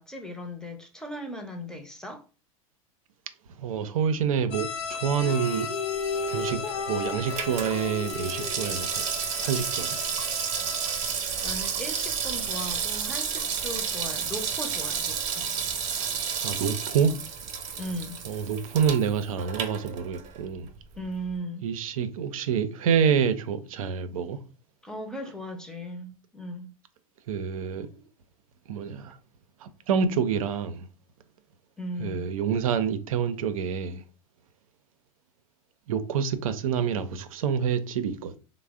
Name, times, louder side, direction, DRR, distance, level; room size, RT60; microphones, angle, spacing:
voice 1, 0.0-2.2 11.4-15.5 17.8-18.2 20.9-21.7 24.8-26.7 31.8-32.3, equal, 5° left, 0.7 m, -37 dB
voice 2, 3.5-5.7 6.3-9.0 9.4-10.0 16.4-17.2 18.3-20.7 21.6-24.4 27.3-28.0 28.7-29.2 29.6-30.9 32.0-34.0 35.9-38.4, right 7 dB, 80° right, 0.5 m, -27 dB
sound 1, 4.5-11.1, left 6 dB, 55° left, 1.0 m, -37 dB
sound 2, 5.2-9.5, left 3 dB, 75° left, 0.5 m, -34 dB
Water tap faucet / Sink (filling or washing), 6.1-20.4 20.7-20.8, right 7 dB, 40° right, 0.8 m, -31 dB
3.2 x 2.0 x 3.5 m
hypercardioid pair, 100°, 18 cm